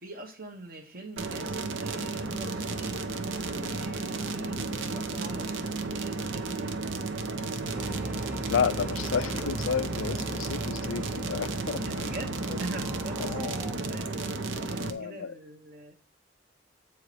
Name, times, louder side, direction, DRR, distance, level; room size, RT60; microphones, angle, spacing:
voice 1, 0.0-5.6 5.9-6.7 11.8-15.9, right 2 dB, 50° right, 1.2 m, -43 dB
sound 1, 1.2-14.9, right 3 dB, 75° right, 1.0 m, -33 dB
sound 2, 7.7-13.7, equal, 10° right, 0.3 m, -41 dB
voice 2, 8.5-12.1 13.3-13.6 14.5-15.3, left 6 dB, 85° left, 0.5 m, -31 dB
8.5 x 4.6 x 5.0 m
head